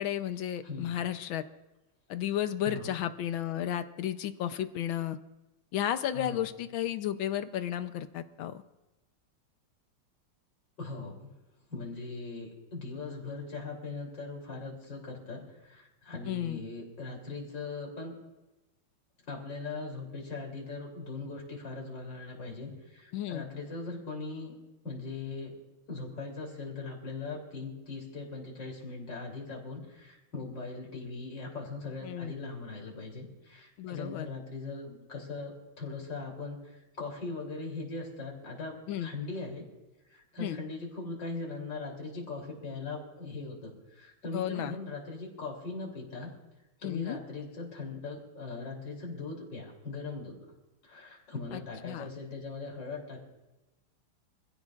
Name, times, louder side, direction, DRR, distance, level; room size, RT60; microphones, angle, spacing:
voice 1, 0.0-1.4 2.1-5.2 5.7-8.6 16.3-16.6 23.1-23.5 32.0-32.3 33.8-34.3 38.9-39.1 40.4-40.6 44.3-44.8 46.8-47.2 51.5-52.1, left 11 dB, 75° left, 11 dB, 1.5 m, -33 dB
voice 2, 0.6-0.9 2.6-2.9 6.1-6.4 10.8-11.3 11.7-18.2 19.3-24.5 24.8-25.6 25.9-39.7 40.1-46.3 46.8-50.4 50.8-53.2, left 3 dB, 55° left, 0 dB, 3.9 m, -40 dB
26.0 x 16.0 x 2.4 m, 1.0 s
omnidirectional pair, 2.3 m